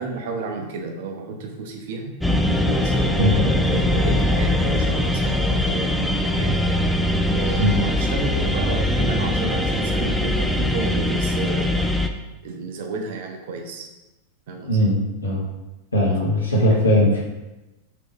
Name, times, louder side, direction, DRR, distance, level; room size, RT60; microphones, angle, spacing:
voice 1, 0.0-2.1 2.6-6.6 7.3-11.9 12.4-13.9 14.5-14.9 16.0-16.1, right 3 dB, 55° right, 2 dB, 0.6 m, -32 dB
sound 1, 2.2-12.1, left 1 dB, ahead, 0.3 m, -21 dB
voice 2, 14.7-15.4 15.9-17.3, equal, 75° left, -4 dB, 1.0 m, -19 dB
3.4 x 2.9 x 3.4 m, 1.0 s
figure-of-eight pair, 90°, 0 cm